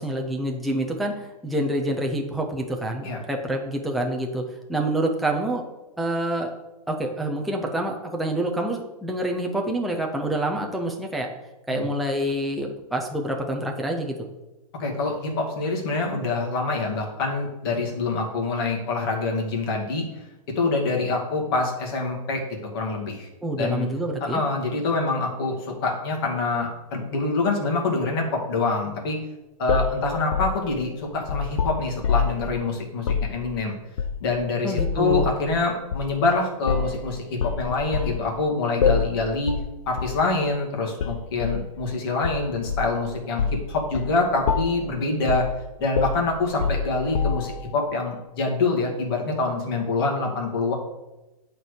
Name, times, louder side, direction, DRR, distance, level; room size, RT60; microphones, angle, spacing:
voice 1, 0.0-4.4 4.7-5.6 6.0-6.5 6.9-11.3 11.7-14.1 23.4-24.4 34.6-35.3, right 1 dB, ahead, 0 dB, 0.4 m, -27 dB
voice 2, 14.8-20.1 20.6-22.4 22.7-23.3 23.6-23.9 24.2-29.2 29.6-33.8 34.2-39.5 39.9-45.5 45.8-50.7, left 3 dB, 40° left, 0 dB, 2.2 m, -25 dB
sound 1, 29.7-32.4 33.0-33.3 34.0-34.4 34.8-35.4 35.9-36.1 36.7-37.0 37.4-38.2 38.8-39.2 39.5-39.7 40.0-40.2 41.0-41.6 42.2-43.0 43.4-43.6 43.9-44.1 44.5-44.9 45.3-45.6 46.0-47.6, left 6 dB, 55° left, 0.7 m, -25 dB
11.0 x 4.5 x 4.9 m, 1.0 s
hypercardioid pair, 170°, 19 cm